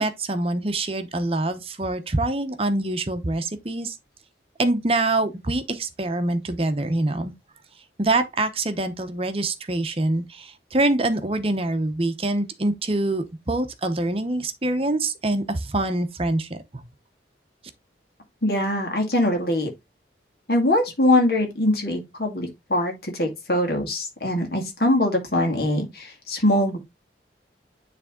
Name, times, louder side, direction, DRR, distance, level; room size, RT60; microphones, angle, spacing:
voice 1, 0.0-4.0 4.6-7.3 8.0-16.6, right 2 dB, 30° right, 0.8 m, -25 dB
voice 2, 18.4-19.7 20.5-26.8, left 1 dB, 55° left, 2.1 m, -22 dB
9.6 x 3.4 x 3.6 m
head